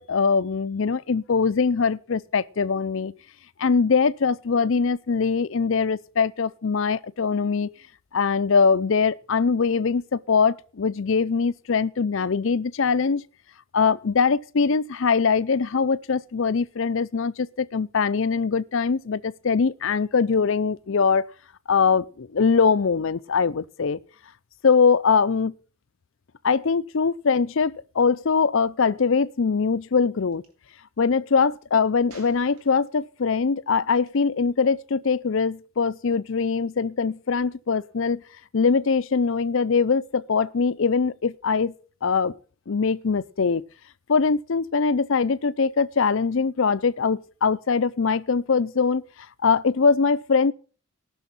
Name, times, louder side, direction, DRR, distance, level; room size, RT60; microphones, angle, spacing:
voice 1, 0.0-3.1 3.6-7.7 8.1-13.2 13.7-21.2 21.7-24.0 24.6-25.5 26.4-30.4 31.0-38.2 38.5-41.7 42.0-42.4 42.7-43.6 44.1-49.0 49.4-50.5, left 5 dB, 60° left, 0.5 m, -22 dB
Gunshot gunfire, 30.3-30.5 32.1-33.1 34.0-34.2, right 3 dB, 90° right, 2.7 m, -51 dB
18.5 x 6.3 x 5.9 m
head